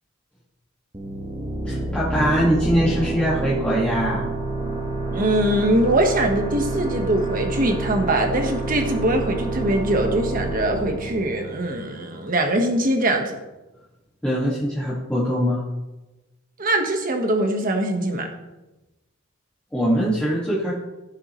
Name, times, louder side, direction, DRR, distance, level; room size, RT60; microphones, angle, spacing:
sound 1, 0.9-12.3, right 2 dB, 20° right, 1.4 m, -28 dB
voice 1, 1.7-4.3 14.2-15.6 19.7-20.7, equal, 5° left, -9 dB, 2.0 m, -22 dB
voice 2, 5.1-13.4 16.6-18.3, right 1 dB, 40° right, 3 dB, 1.4 m, -22 dB
15.0 x 7.4 x 3.2 m, 1.0 s
head